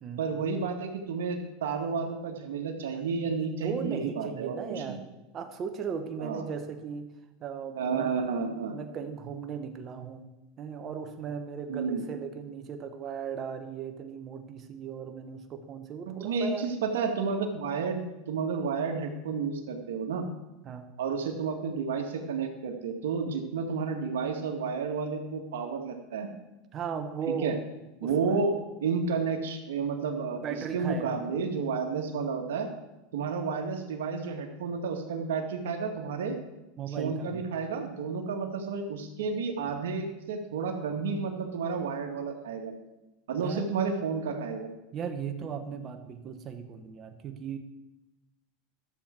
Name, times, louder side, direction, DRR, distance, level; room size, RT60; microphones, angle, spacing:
voice 1, 0.2-5.0 6.2-6.4 7.8-8.8 11.7-12.0 16.1-20.3 21.0-26.3 27.3-27.6 28.0-28.5 28.8-30.4 30.7-32.7 33.1-36.4 36.9-42.7 43.3-44.7, right 5 dB, 85° right, 3 dB, 1.8 m, -31 dB
voice 2, 3.6-5.0 5.3-7.1 7.4-10.3 10.6-16.6 20.6-20.9 26.7-27.6 28.0-28.4 30.4-31.2 32.0-32.2 36.8-37.4 43.4-43.6 44.9-47.6, right 6 dB, 35° right, 6 dB, 1.3 m, -37 dB
12.5 x 7.4 x 4.5 m, 1.0 s
supercardioid pair, 120°, 0 cm